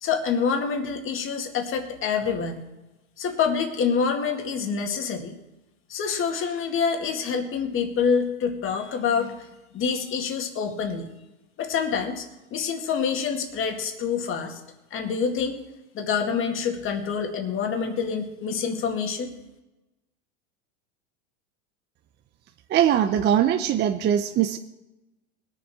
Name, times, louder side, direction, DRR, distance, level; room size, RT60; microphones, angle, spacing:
voice 1, 0.0-2.7 3.2-5.4 5.9-9.5 9.7-11.1 11.6-14.6 14.9-15.6 15.9-19.3, left 6 dB, 35° left, 4 dB, 2.1 m, -26 dB
voice 2, 22.7-24.6, right 10 dB, 25° right, 7 dB, 0.6 m, -21 dB
20.5 x 7.2 x 4.8 m, 1.0 s
supercardioid pair, 120°, 38 cm